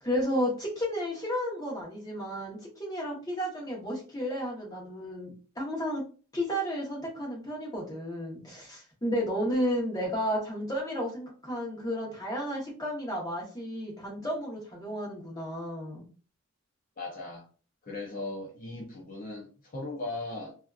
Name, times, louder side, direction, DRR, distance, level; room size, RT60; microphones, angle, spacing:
voice 1, 0.0-6.0 6.3-16.0, equal, 15° left, 0.9 m, -32 dB
voice 2, 17.0-17.4 17.9-20.5, left 2 dB, 40° left, 0.5 m, -38 dB
2.6 x 2.3 x 2.3 m
head